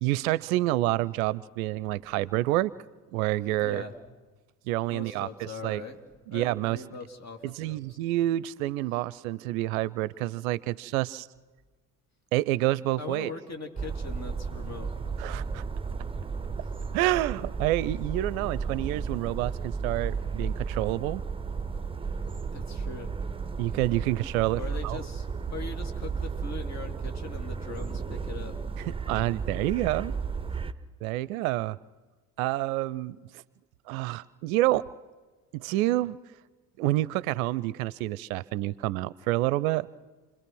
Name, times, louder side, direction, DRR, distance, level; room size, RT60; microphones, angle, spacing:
voice 1, 0.0-2.7 3.1-3.8 4.7-5.9 6.3-6.9 7.4-11.3 12.3-13.3 15.2-15.6 16.9-21.2 23.6-25.0 28.8-30.1 31.0-31.8 32.4-33.2 33.9-34.9 35.5-36.2 36.8-39.9, right 16 dB, 65° right, 21 dB, 0.6 m, -28 dB
voice 2, 3.6-3.9 4.9-6.0 6.3-7.8 13.0-15.1 22.5-23.1 24.6-28.5, left 4 dB, 35° left, 5 dB, 3.0 m, -41 dB
sound 1, 13.8-30.7, right 5 dB, 10° right, 0.9 m, -34 dB
28.5 x 21.0 x 6.1 m, 1.3 s
figure-of-eight pair, 55°, 46 cm